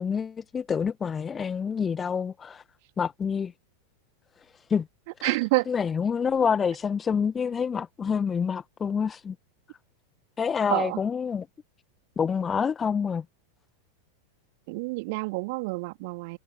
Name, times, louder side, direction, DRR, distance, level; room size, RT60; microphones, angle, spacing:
voice 1, 0.0-2.6 3.0-3.5 4.7-4.9 5.2-5.4 5.7-9.3 10.4-11.4 12.2-13.2, left 6 dB, 20° left, 1.5 m, -27 dB
voice 2, 5.2-5.7 10.7-11.0 14.7-16.4, right 26 dB, 50° right, 3.3 m, -28 dB
figure-of-eight pair, 90°, 0 cm